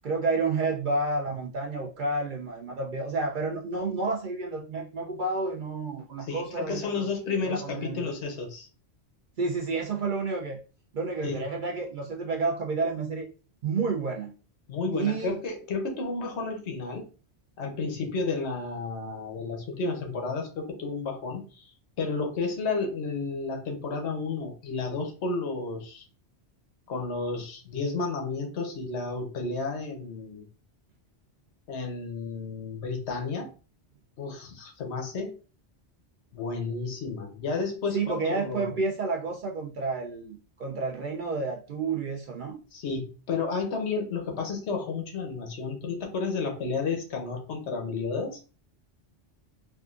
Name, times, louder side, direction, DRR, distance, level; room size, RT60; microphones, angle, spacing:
voice 1, 0.0-8.1 9.4-10.6 10.9-13.3 13.6-14.3 14.9-15.3 37.9-42.6, right 3 dB, 60° right, 0.6 m, -30 dB
voice 2, 6.2-8.7 11.2-11.5 14.7-17.1 17.6-21.7 22.0-26.1 26.9-30.5 31.7-33.5 34.2-35.4 36.3-38.7 42.7-48.4, left 4 dB, 75° left, 1.0 m, -32 dB
3.5 x 2.4 x 2.3 m
omnidirectional pair, 1.2 m